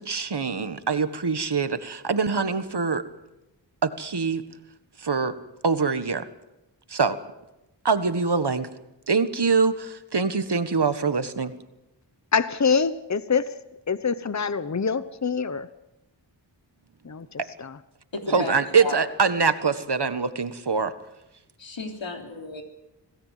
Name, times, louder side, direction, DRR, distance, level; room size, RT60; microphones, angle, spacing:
voice 1, 0.0-3.0 3.8-4.4 5.0-5.4 5.6-6.3 6.9-7.2 7.8-8.7 9.1-11.5 17.4-17.5 18.3-20.9, right 5 dB, 65° right, 11 dB, 1.6 m, -24 dB
voice 2, 12.3-13.5 13.9-15.7 17.0-17.8 18.3-18.4, left 5 dB, 40° left, 14 dB, 1.0 m, -25 dB
voice 3, 18.1-19.0 21.6-22.6, left 2 dB, 85° left, 3 dB, 3.5 m, -33 dB
27.0 x 17.5 x 7.6 m, 0.96 s
wide cardioid pair, 50°, 44 cm